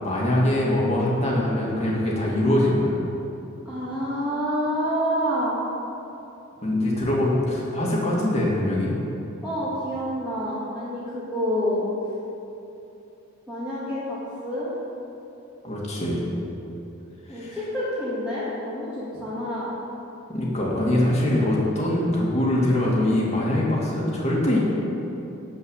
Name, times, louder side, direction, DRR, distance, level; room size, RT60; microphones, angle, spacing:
voice 1, 0.0-3.0 6.6-9.0 15.6-16.3 17.3-17.6 20.3-24.6, left 1 dB, 30° left, -4 dB, 2.3 m, -23 dB
voice 2, 3.7-5.6 9.4-11.9 13.5-14.7 17.3-19.7, equal, 5° right, -12 dB, 2.1 m, -28 dB
12.5 x 5.1 x 8.0 m, 2.9 s
head